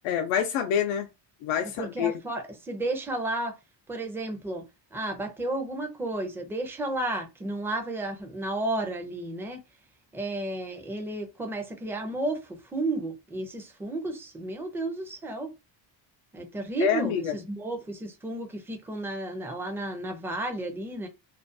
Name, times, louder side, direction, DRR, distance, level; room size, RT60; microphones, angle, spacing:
voice 1, 0.0-1.1 1.4-2.1 16.8-17.3, left 9 dB, 85° left, 0.5 m, -26 dB
voice 2, 1.8-3.5 3.9-4.6 4.9-9.6 10.1-15.5 16.3-21.1, right 2 dB, 5° right, 0.4 m, -32 dB
2.5 x 2.2 x 2.5 m
cardioid pair, 135°, 46 cm